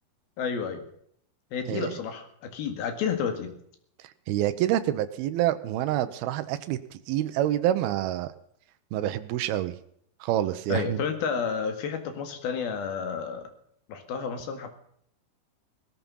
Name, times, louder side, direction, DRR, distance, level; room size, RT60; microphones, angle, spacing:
voice 1, 0.4-0.9 1.5-3.5 10.7-13.4 13.9-14.7, left 6 dB, 70° left, 6 dB, 3.7 m, -31 dB
voice 2, 4.3-6.8 7.1-8.3 8.9-9.7 10.2-11.0, right 13 dB, 75° right, 10 dB, 2.7 m, -27 dB
17.5 x 13.5 x 5.6 m, 0.66 s
omnidirectional pair, 4.7 m